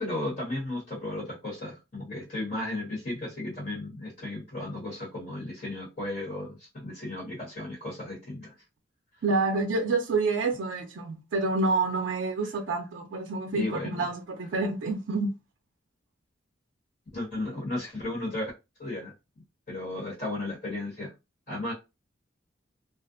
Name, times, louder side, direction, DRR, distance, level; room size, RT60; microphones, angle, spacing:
voice 1, 0.0-8.5 13.5-14.0 17.1-18.5 18.8-19.1 19.7-21.1 21.5-21.7, left 2 dB, 45° left, 1.2 m, -34 dB
voice 2, 9.2-15.3, right 3 dB, 75° right, 0.4 m, -28 dB
2.4 x 2.1 x 2.6 m
head